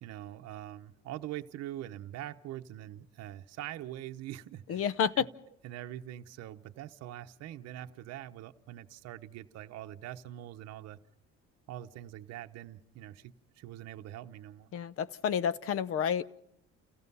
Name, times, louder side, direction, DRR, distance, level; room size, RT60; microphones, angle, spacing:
voice 1, 0.0-4.9 5.2-5.3 5.6-11.0 11.7-14.7, right 13 dB, 60° right, 0.9 m, -43 dB
voice 2, 4.7-5.3 14.7-16.2, left 8 dB, 50° left, 0.7 m, -30 dB
29.0 x 16.0 x 5.5 m
cardioid pair, 160°, 29 cm